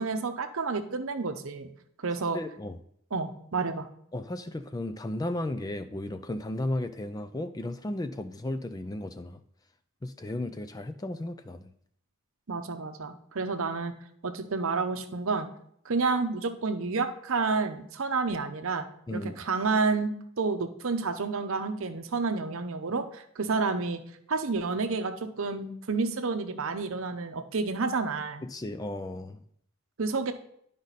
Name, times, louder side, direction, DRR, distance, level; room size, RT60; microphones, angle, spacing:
voice 1, 0.0-1.7 2.0-2.4 3.1-3.9 12.5-13.9 14.2-15.5 15.8-18.9 19.1-24.0 24.3-28.4 30.0-30.3, right 4 dB, 65° right, 8 dB, 0.7 m, -30 dB
voice 2, 2.3-2.8 4.1-9.4 10.0-11.7 19.1-19.3 28.5-29.4, left 1 dB, 15° left, 10 dB, 0.3 m, -34 dB
10.5 x 5.2 x 4.1 m, 0.68 s
head